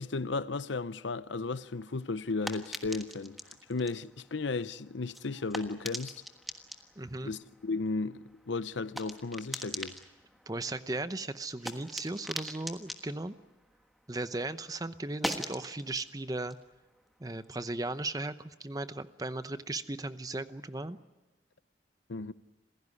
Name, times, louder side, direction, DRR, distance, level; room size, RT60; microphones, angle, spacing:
voice 1, 0.0-6.2 7.2-10.0 22.1-22.3, left 3 dB, 80° left, 0.7 m, -35 dB
sound 1, 1.6-14.4 14.7-17.9, equal, ahead, 1.4 m, -43 dB
voice 2, 7.0-7.3 10.5-13.4 14.1-16.6 17.2-21.0, right 2 dB, 20° right, 0.7 m, -36 dB
27.5 x 16.5 x 9.7 m
head